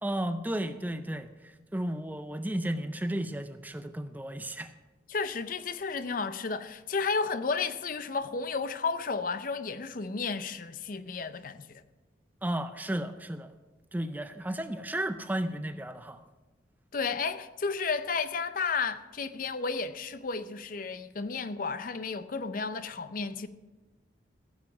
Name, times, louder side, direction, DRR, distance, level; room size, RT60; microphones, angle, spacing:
voice 1, 0.0-4.7 12.4-13.5 13.9-16.2, right 1 dB, 10° right, 0.4 m, -33 dB
voice 2, 5.1-11.8 16.9-23.5, left 4 dB, 45° left, 0.5 m, -32 dB
15.5 x 7.4 x 5.7 m
head